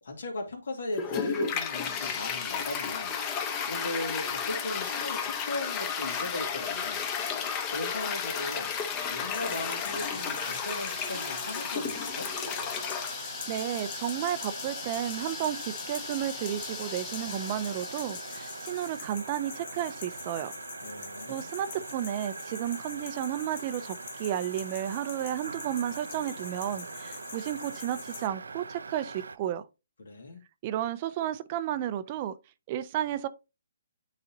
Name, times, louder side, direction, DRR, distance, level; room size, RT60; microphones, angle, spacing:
voice 1, 0.0-3.1 3.6-7.0 7.7-8.7 9.1-12.3 20.8-21.5 30.0-30.4, left 1 dB, 75° left, 2.3 m, -37 dB
Toilet flush, 0.9-18.9, left 7 dB, 25° left, 0.9 m, -34 dB
sound 1, 9.3-28.3, left 7 dB, 45° left, 1.2 m, -45 dB
sound 2, 9.9-29.4, right 4 dB, 85° right, 0.5 m, -43 dB
voice 2, 13.0-20.5 21.3-29.6 30.6-32.3 32.7-33.3, right 11 dB, 30° right, 0.5 m, -32 dB
9.6 x 4.1 x 2.7 m
hypercardioid pair, 155°, 0 cm